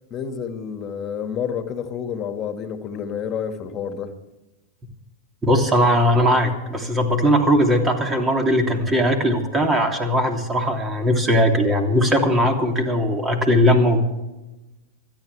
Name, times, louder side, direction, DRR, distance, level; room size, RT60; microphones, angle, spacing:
voice 1, 0.1-4.1, left 7 dB, 35° left, 2.0 m, -29 dB
voice 2, 5.4-14.0, equal, 20° right, 3.0 m, -19 dB
27.0 x 10.5 x 3.5 m
figure-of-eight pair, 95°, 0 cm